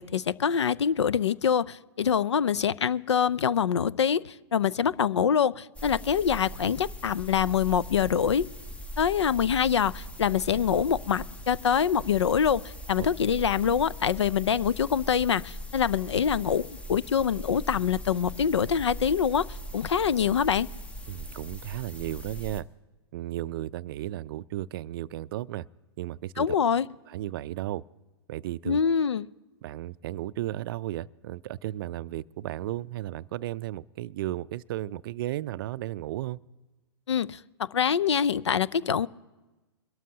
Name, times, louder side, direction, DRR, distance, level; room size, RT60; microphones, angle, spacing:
voice 1, 0.0-8.5 9.0-12.6 12.9-19.5 19.7-20.7 26.4-26.9 28.7-29.3 37.1-39.1, left 7 dB, 85° left, 20 dB, 0.4 m, -25 dB
sound 1, 5.7-22.6, equal, 10° left, 0.7 m, -40 dB
voice 2, 21.1-22.7 23.1-25.6 26.0-26.6 27.1-27.8 28.3-28.8 29.6-36.4, right 14 dB, 55° right, 18 dB, 0.4 m, -34 dB
23.0 x 12.5 x 2.8 m, 1.1 s
hypercardioid pair, 115°, 14 cm